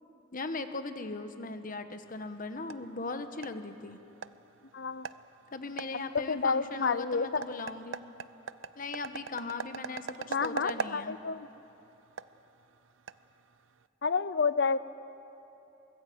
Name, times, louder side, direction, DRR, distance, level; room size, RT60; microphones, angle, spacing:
voice 1, 0.3-4.0 5.5-8.0 8.8-11.2, left 3 dB, 45° left, 9 dB, 1.3 m, -38 dB
sound 1, 2.0-13.9, right 5 dB, 80° right, 0.6 m, -43 dB
voice 2, 4.7-5.1 6.1-7.5 10.3-11.5 14.0-14.8, left 5 dB, 60° left, 15 dB, 0.7 m, -29 dB
24.0 x 21.0 x 8.0 m, 3.0 s
head